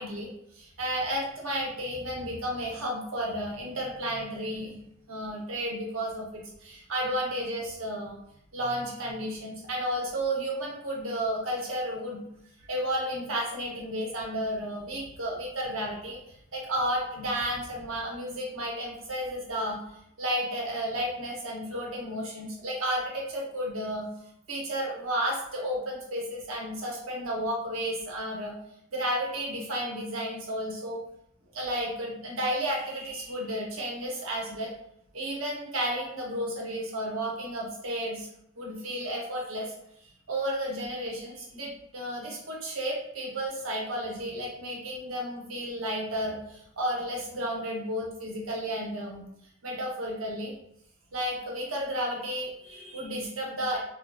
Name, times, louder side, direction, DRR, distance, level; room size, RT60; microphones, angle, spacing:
voice 1, 0.0-4.8 5.1-8.2 8.5-12.2 12.6-16.2 16.5-19.8 20.2-24.1 24.5-28.5 28.9-31.0 31.5-34.7 35.1-38.3 38.6-39.7 40.0-49.3 49.6-50.5 51.1-53.8, equal, 75° right, -2 dB, 0.8 m, -32 dB
2.9 x 2.6 x 2.3 m, 0.76 s
head